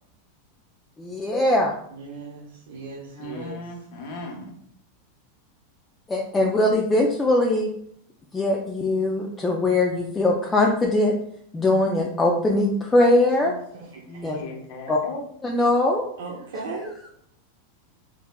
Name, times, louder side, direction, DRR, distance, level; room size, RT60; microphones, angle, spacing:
voice 1, 1.0-1.7 6.1-7.7 8.3-11.1 11.5-13.5 14.2-14.4 14.9-15.0 15.4-16.0 16.8-17.1, left 2 dB, 10° left, -1 dB, 0.4 m, -21 dB
voice 2, 1.9-3.6 13.4-14.3 16.2-16.9, right 3 dB, 85° right, -3 dB, 0.7 m, -37 dB
voice 3, 3.1-4.5 14.1-15.2, left 2 dB, 55° left, 0 dB, 1.1 m, -37 dB
3.7 x 3.2 x 2.2 m, 0.66 s
supercardioid pair, 150°, 0 cm